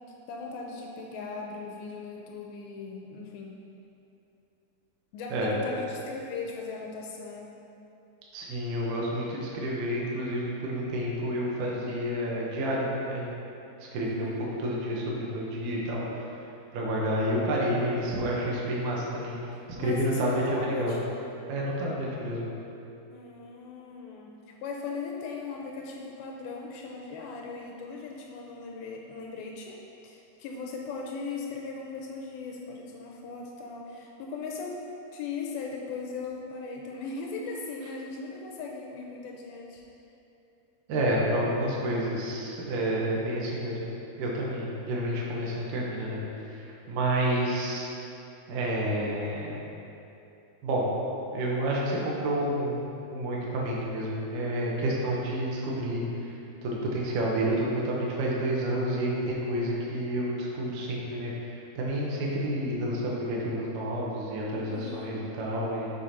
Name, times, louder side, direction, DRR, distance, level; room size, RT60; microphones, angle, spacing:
voice 1, 0.3-3.6 5.1-7.5 14.0-14.4 19.8-21.0 23.1-34.8 35.1-39.8 64.7-65.2, left 4 dB, 80° left, 0 dB, 2.3 m, -38 dB
voice 2, 8.3-13.2 13.8-16.2 16.7-19.3 19.8-20.9 21.5-22.4 40.9-43.8 44.2-46.2 46.5-47.9 48.5-49.6 50.6-50.9 51.3-65.9, right 1 dB, 70° right, -4 dB, 2.2 m, -29 dB
6.3 x 6.1 x 4.1 m, 2.8 s
omnidirectional pair, 4.6 m